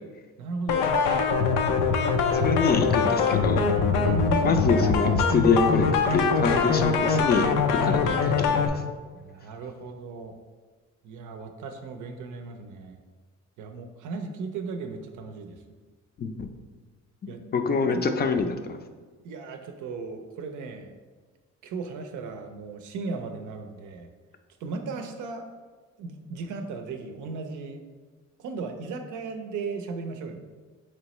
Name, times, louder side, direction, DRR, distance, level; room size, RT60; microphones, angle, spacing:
voice 1, 0.4-0.9 4.0-4.5 7.9-8.0 9.1-10.4 11.0-13.0 13.6-15.8 17.3-17.4 17.9-18.0 19.2-20.9 21.6-24.1 24.6-25.5 26.0-27.8 28.4-30.4, right 4 dB, 80° right, 6 dB, 0.5 m, -36 dB
sound 1, 0.7-8.7, left 5 dB, 90° left, 0.5 m, -23 dB
voice 2, 2.3-3.6 4.4-8.7 16.2-16.5 17.2-18.8, left 4 dB, 35° left, 7 dB, 0.4 m, -26 dB
4.5 x 3.0 x 3.0 m, 1.4 s
cardioid pair, 90°, 30 cm